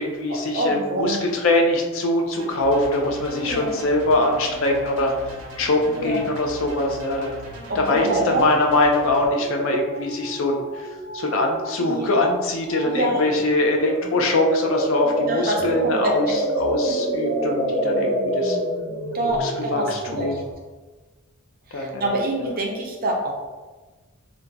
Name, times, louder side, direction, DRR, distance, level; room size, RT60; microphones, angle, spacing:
voice 1, 0.0-7.3 7.7-18.6 19.3-20.5 21.7-22.5, left 2 dB, 65° left, 2 dB, 0.5 m, -23 dB
voice 2, 0.5-1.2 3.4-3.7 6.0-6.2 7.7-8.5 11.8-12.1 12.8-13.2 15.3-16.3 19.1-19.9 20.2-20.3 21.7-23.3, right 1 dB, 45° right, 0 dB, 0.5 m, -25 dB
sound 1, 2.4-9.3, right 1 dB, 90° right, 0.7 m, -38 dB
sound 2, 9.2-11.8 12.0-12.3 12.7-13.2 13.6-20.5, right 1 dB, 45° left, 1.3 m, -27 dB
2.6 x 2.2 x 3.8 m, 1.3 s
head